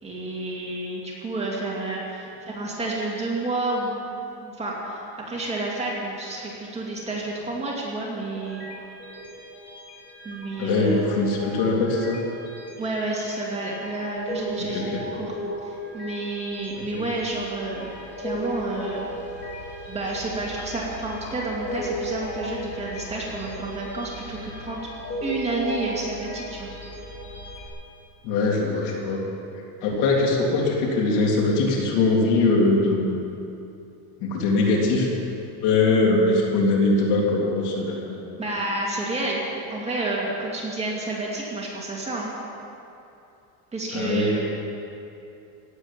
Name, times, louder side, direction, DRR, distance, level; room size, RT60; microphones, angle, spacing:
voice 1, 0.0-4.0 4.4-8.7 10.2-11.0 12.8-15.3 15.6-17.9 18.2-19.0 19.9-24.8 25.2-26.7 38.4-39.4 39.7-42.3 43.7-44.4, right 2 dB, 15° right, -4 dB, 2.6 m, -30 dB
sound 1, 8.3-27.7, equal, 25° left, 3.6 m, -36 dB
voice 2, 10.6-12.2 14.6-15.0 28.2-29.3 29.8-33.2 34.2-35.1 35.6-38.4 43.9-44.3, left 3 dB, 70° left, -2 dB, 3.5 m, -22 dB
17.0 x 8.2 x 9.0 m, 2.7 s
cardioid pair, 150°, 44 cm